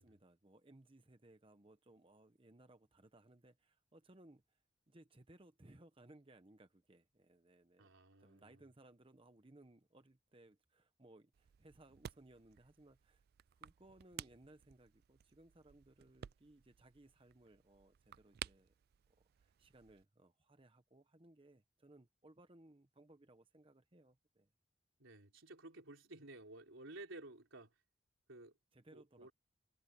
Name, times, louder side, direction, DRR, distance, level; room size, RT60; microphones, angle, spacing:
voice 1, 0.0-7.9 8.2-13.2 13.6-18.7 19.4-24.5 28.7-29.3, right 1 dB, 25° right, 0.9 m, -64 dB
voice 2, 7.8-8.7 25.0-27.7 28.3-28.6 28.9-29.3, right 2 dB, 85° right, 3.9 m, -54 dB
sound 1, 11.3-20.1, right 10 dB, 50° right, 0.3 m, -55 dB
head